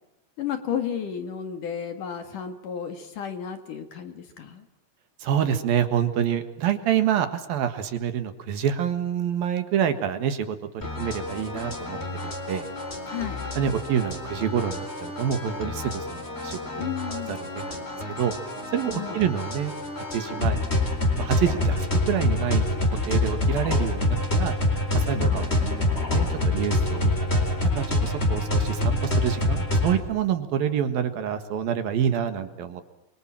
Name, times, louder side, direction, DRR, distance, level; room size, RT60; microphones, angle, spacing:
voice 1, 0.4-4.7 13.1-13.4 16.8-17.4 18.9-19.2 25.1-25.4, left 8 dB, 55° left, 8 dB, 2.8 m, -33 dB
voice 2, 5.2-12.7 13.6-18.3 18.7-20.6 21.2-24.5 24.9-27.3 27.8-32.8, right 9 dB, 60° right, 10 dB, 2.8 m, -27 dB
sound 1, 10.8-30.0, left 1 dB, 15° left, 3.7 m, -26 dB
29.5 x 24.0 x 7.5 m, 0.90 s
omnidirectional pair, 5.8 m